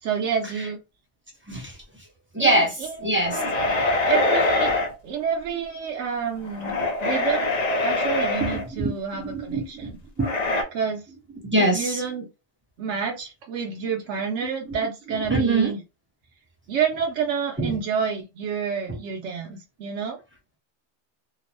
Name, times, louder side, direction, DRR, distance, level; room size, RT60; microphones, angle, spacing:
voice 1, 0.0-0.8 2.4-3.5 4.0-7.5 7.8-10.0 10.7-11.0 11.6-12.3 12.8-15.8 16.7-20.2, right 6 dB, 90° right, 0.9 m, -29 dB
voice 2, 2.3-2.7 3.0-3.4 8.4-10.4 11.4-12.0 14.7-14.8 15.2-15.7 17.6-17.7 18.9-19.0, right 2 dB, 10° right, 0.7 m, -24 dB
sound 1, 3.2-4.9 6.4-8.6 10.2-10.6, left 2 dB, 45° left, 0.6 m, -24 dB
3.0 x 2.0 x 2.5 m
omnidirectional pair, 1.2 m